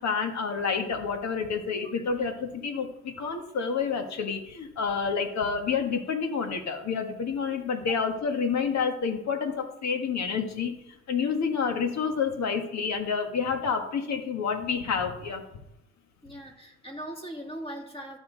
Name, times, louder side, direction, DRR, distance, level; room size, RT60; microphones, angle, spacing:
voice 1, 0.0-15.4, left 5 dB, 65° left, 5 dB, 1.6 m, -29 dB
voice 2, 16.2-18.2, right 1 dB, 20° left, 2 dB, 2.1 m, -39 dB
12.0 x 7.1 x 3.9 m, 0.81 s
cardioid pair, 90°, 30 cm